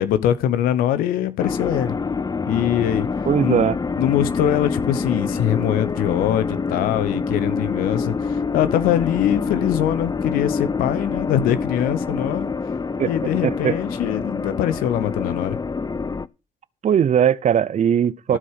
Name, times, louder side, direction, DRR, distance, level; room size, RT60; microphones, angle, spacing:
voice 1, 0.0-1.9 2.5-3.1 3.4-3.7 4.0-12.5 13.1-15.6 18.3-18.4, left 11 dB, 85° left, 1.0 m, -22 dB
sound 1, 1.4-16.3, left 4 dB, 25° left, 0.6 m, -26 dB
voice 2, 3.2-3.8 13.0-13.1 13.4-13.8 16.8-18.4, right 8 dB, 55° right, 0.7 m, -19 dB
14.5 x 4.9 x 6.5 m
supercardioid pair, 50°, 15 cm